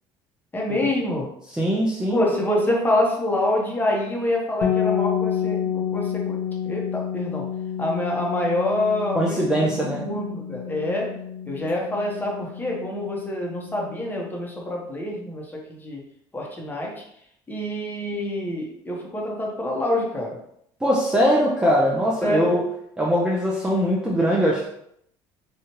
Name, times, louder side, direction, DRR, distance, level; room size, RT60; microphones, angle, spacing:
voice 1, 0.5-1.3 2.1-6.4 6.6-7.5 7.8-9.7 9.9-11.2 11.5-16.1 16.3-17.0 17.5-20.4 22.2-22.6, left 1 dB, 15° left, -1 dB, 0.9 m, -26 dB
voice 2, 1.5-2.2 9.1-10.1 20.8-22.6 23.0-24.7, equal, 5° right, -4 dB, 0.5 m, -21 dB
sound 1, 4.6-14.4, left 9 dB, 80° left, 0.6 m, -29 dB
3.1 x 2.3 x 2.8 m, 0.71 s
supercardioid pair, 95°, 11 cm